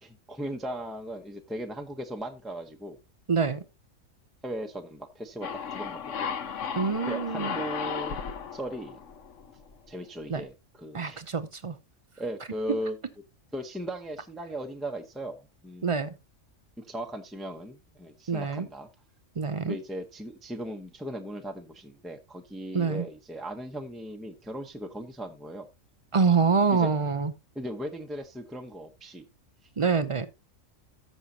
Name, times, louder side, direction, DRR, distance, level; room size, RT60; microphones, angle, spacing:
voice 1, 0.0-3.0 4.4-6.3 7.1-8.2 8.5-9.0 9.9-11.2 12.2-13.0 13.5-16.0 16.8-18.9 19.6-25.7 26.7-26.9 27.5-29.3, right 1 dB, ahead, 0.8 m, -37 dB
voice 2, 3.3-3.6 6.8-7.5 10.3-10.4 10.9-11.8 15.8-16.1 18.3-18.7 19.4-19.8 22.7-23.0 26.1-27.3 29.8-30.3, right 5 dB, 45° right, 0.4 m, -25 dB
sound 1, 5.4-9.9, left 7 dB, 70° left, 1.2 m, -35 dB
14.0 x 6.4 x 2.8 m
omnidirectional pair, 1.4 m